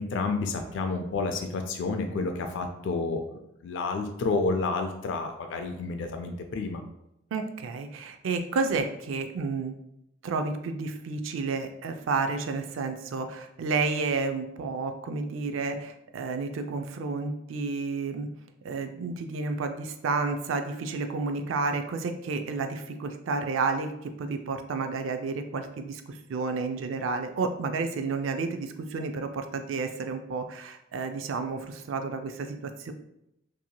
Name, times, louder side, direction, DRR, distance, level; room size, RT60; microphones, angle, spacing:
voice 1, 0.0-6.8, left 3 dB, 65° left, 5 dB, 0.3 m, -30 dB
voice 2, 7.3-9.7 10.2-18.3 18.6-32.9, right 4 dB, 80° right, 7 dB, 0.3 m, -31 dB
2.9 x 2.7 x 2.2 m, 0.82 s
head